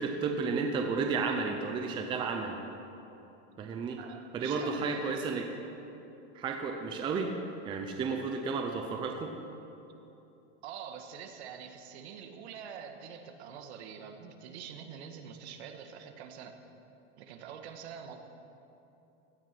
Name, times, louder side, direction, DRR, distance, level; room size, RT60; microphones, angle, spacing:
voice 1, 0.0-2.6 3.6-4.0 4.3-5.5 6.3-7.3 7.6-9.3, right 4 dB, 15° right, 3 dB, 0.6 m, -32 dB
voice 2, 4.0-5.2 10.6-16.6 17.2-18.2, right 7 dB, 60° right, 6 dB, 1.7 m, -45 dB
16.5 x 12.0 x 6.0 m, 2.9 s
supercardioid pair, 165°, 36 cm